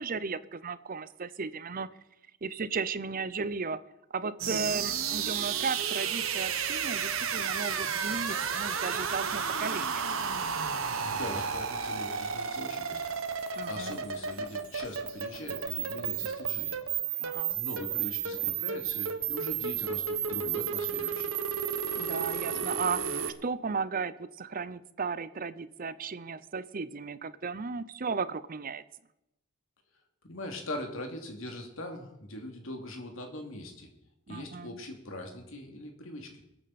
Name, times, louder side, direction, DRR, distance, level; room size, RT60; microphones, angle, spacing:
voice 1, 0.0-1.9 2.4-3.8 4.1-10.1 13.6-14.0 17.2-17.6 22.0-23.0 23.4-28.8 34.3-34.8, right 4 dB, 45° right, 15 dB, 0.7 m, -35 dB
sound 1, 4.4-23.3, right 7 dB, 75° right, 1.3 m, -32 dB
voice 2, 11.0-13.2 13.7-16.7 17.5-21.4 30.2-33.9 34.3-36.4, left 1 dB, 70° left, 3 dB, 2.6 m, -41 dB
22.5 x 8.8 x 4.2 m, 0.87 s
head